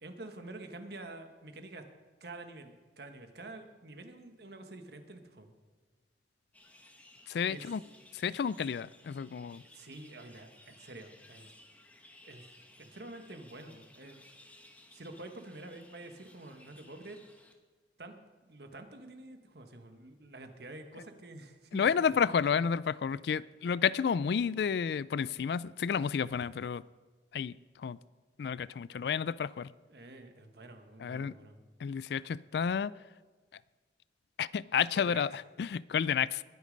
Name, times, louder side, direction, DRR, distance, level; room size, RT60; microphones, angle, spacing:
voice 1, 0.0-1.8 2.2-5.5 7.5-7.6 9.7-11.5 12.2-12.5 12.8-14.2 14.9-17.2 18.0-18.1 18.4-22.1 29.9-31.7 34.9-35.2, right 2 dB, 60° right, 6 dB, 1.4 m, -48 dB
sound 1, 6.5-17.5, left 1 dB, 10° left, 1.1 m, -59 dB
voice 2, 7.3-7.8 8.1-9.6 21.7-26.8 27.3-28.0 28.4-29.7 31.0-31.3 31.8-32.9 34.4-36.4, left 7 dB, 60° left, 19 dB, 0.3 m, -31 dB
20.5 x 8.5 x 5.2 m, 1.3 s
head